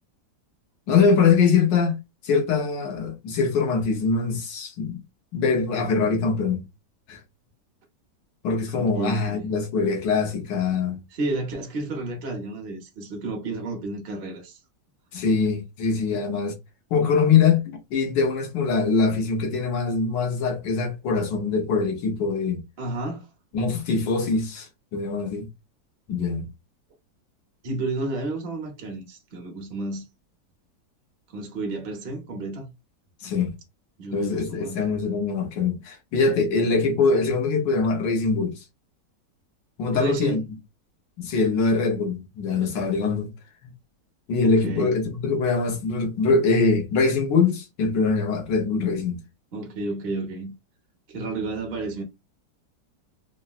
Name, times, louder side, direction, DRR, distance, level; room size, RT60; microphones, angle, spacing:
voice 1, 0.9-2.0 2.2-5.0 5.3-6.6 7.1-7.2 8.4-11.0 15.1-16.5 16.9-22.6 23.5-25.5 26.1-26.5 33.2-33.5 34.1-38.6 39.8-40.4 41.2-43.3 44.3-49.2, left 4 dB, 90° left, 1.5 m, -23 dB
voice 2, 8.7-9.5 11.1-14.6 16.1-16.2 22.8-23.3 27.6-30.0 31.3-32.7 34.0-34.8 36.5-36.7 39.9-40.5 44.4-44.9 49.5-50.5 51.1-52.0, right 2 dB, 45° right, 0.8 m, -31 dB
3.8 x 2.1 x 2.3 m
omnidirectional pair, 1.9 m